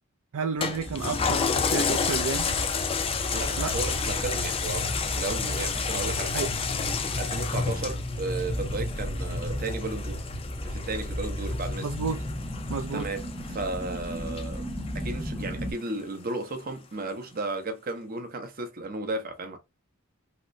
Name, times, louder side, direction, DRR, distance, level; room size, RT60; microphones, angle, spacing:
voice 1, 0.3-2.5 3.6-3.7 6.3-6.5 11.8-12.2 12.7-13.1, right 5 dB, 85° right, 0.4 m, -31 dB
Toilet flush, 0.6-15.4 15.9-16.0, left 6 dB, 25° left, 0.3 m, -31 dB
sound 1, 0.7-15.7, equal, ahead, 0.7 m, -34 dB
voice 2, 3.2-6.5 7.1-10.3 10.6-11.9 12.9-14.7 14.9-19.6, right 3 dB, 40° right, 0.7 m, -34 dB
3.1 x 2.9 x 2.5 m
head